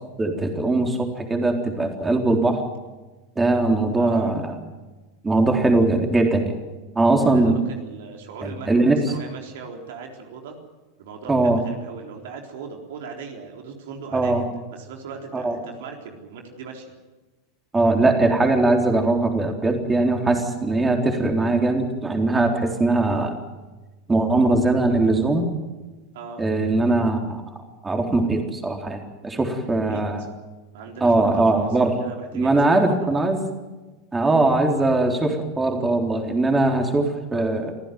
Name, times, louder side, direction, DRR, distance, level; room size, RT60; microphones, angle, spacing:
voice 1, 0.2-2.6 3.4-4.5 5.2-6.5 6.9-7.6 8.4-9.1 11.3-11.6 14.1-14.4 15.3-15.6 17.7-23.4 24.1-25.5 26.4-27.4 27.8-30.3 31.0-32.0 32.3-33.4 34.1-37.7, right 2 dB, 15° right, 3 dB, 3.9 m, -20 dB
voice 2, 4.0-4.3 7.3-10.6 11.0-16.9 26.1-26.4 29.9-30.0 30.7-31.7 32.0-33.1, right 5 dB, 70° right, 3 dB, 3.9 m, -38 dB
26.5 x 15.0 x 9.4 m, 1.2 s
hypercardioid pair, 90°, 0 cm